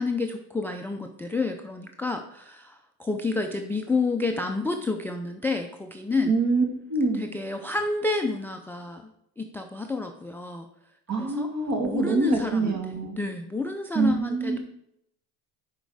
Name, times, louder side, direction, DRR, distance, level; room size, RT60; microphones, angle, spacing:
voice 1, 0.0-6.3 7.1-9.0 9.4-10.7 11.2-11.5 11.8-12.8 13.2-14.6, left 3 dB, 5° left, 4 dB, 0.3 m, -29 dB
voice 2, 6.3-7.2 11.1-13.2 13.9-14.6, right 3 dB, 40° right, 3 dB, 1.7 m, -25 dB
6.2 x 4.5 x 4.7 m, 0.76 s
supercardioid pair, 100°, 42 cm